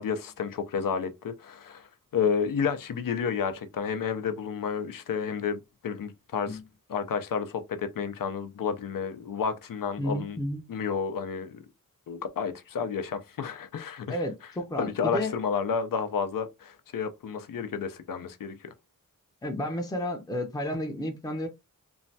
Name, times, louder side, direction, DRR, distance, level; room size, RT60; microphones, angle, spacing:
voice 1, 0.0-6.6 6.9-10.4 10.7-11.6 12.1-14.2 14.8-18.7, left 6 dB, 80° left, 0.5 m, -31 dB
voice 2, 10.0-10.6 14.1-15.3 19.4-21.5, left 1 dB, 10° left, 0.5 m, -32 dB
3.1 x 2.2 x 2.6 m
wide cardioid pair, 110°, 33 cm